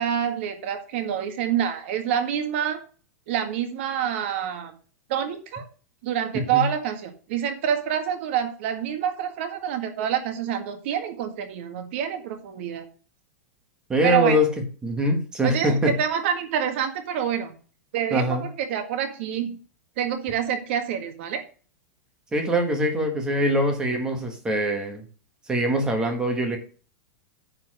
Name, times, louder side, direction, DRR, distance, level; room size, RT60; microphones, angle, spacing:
voice 1, 0.0-2.8 3.3-4.7 5.1-5.6 6.0-12.9 14.0-14.4 15.4-17.5 17.9-19.6 20.0-21.4, right 9 dB, 45° right, 7 dB, 1.8 m, -27 dB
voice 2, 6.3-6.7 13.9-14.5 14.8-16.0 18.1-18.4 22.3-25.0 25.5-26.6, equal, 10° right, 4 dB, 1.7 m, -23 dB
10.0 x 4.5 x 6.3 m, 0.39 s
supercardioid pair, 180°, 9 cm